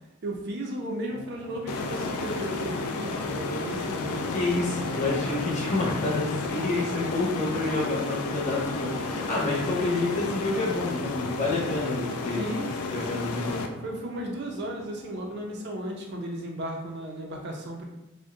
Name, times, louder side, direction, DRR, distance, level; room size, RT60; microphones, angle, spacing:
voice 1, 0.2-4.3 12.3-13.3 13.8-17.9, right 1 dB, 50° right, 1 dB, 0.5 m, -35 dB
sound 1, 0.7-16.1, left 1 dB, 5° left, 0.4 m, -41 dB
sound 2, 1.7-13.7, left 3 dB, 80° left, 0.3 m, -32 dB
voice 2, 4.3-12.5 12.9-13.6, left 2 dB, 35° left, -3 dB, 0.8 m, -28 dB
2.6 x 2.1 x 3.6 m, 0.92 s
head